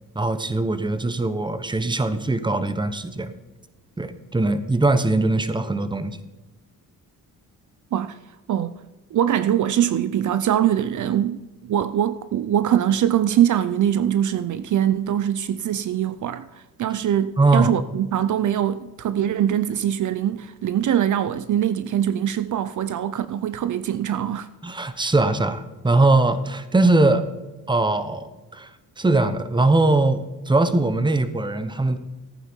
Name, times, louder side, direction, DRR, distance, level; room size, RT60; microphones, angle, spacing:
voice 1, 0.1-3.3 4.0-6.2 17.4-17.7 24.6-27.2 27.7-32.0, right 2 dB, 15° right, 1.0 m, -21 dB
voice 2, 9.1-24.5, right 10 dB, 60° right, 0.6 m, -23 dB
14.5 x 9.2 x 4.6 m
cardioid pair, 100°, 34 cm